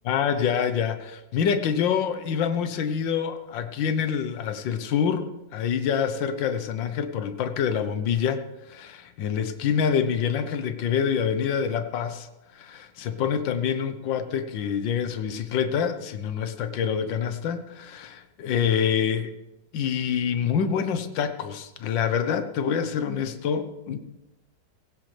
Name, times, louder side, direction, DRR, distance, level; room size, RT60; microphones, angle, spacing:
voice 1, 0.0-12.3 12.5-19.3 19.7-24.0, left 7 dB, 85° left, 9 dB, 1.6 m, -26 dB
16.5 x 16.0 x 3.3 m, 0.99 s
omnidirectional pair, 2.0 m